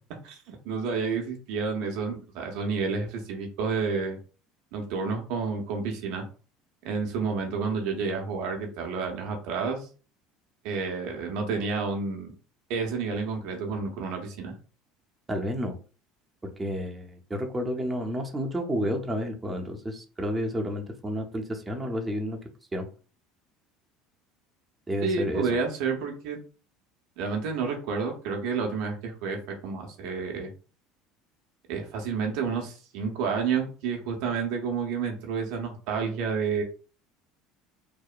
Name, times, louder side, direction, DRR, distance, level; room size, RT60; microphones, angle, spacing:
voice 1, 0.2-4.2 4.7-6.2 6.8-9.9 10.6-12.3 12.7-14.5 25.0-26.4 27.2-30.5 31.7-36.6, right 5 dB, 70° right, 2 dB, 0.6 m, -30 dB
voice 2, 15.3-15.8 16.6-22.4 22.7-22.9 24.9-25.5, equal, 20° right, 2 dB, 0.6 m, -30 dB
2.8 x 2.0 x 2.4 m, 0.37 s
hypercardioid pair, 80°, 0 cm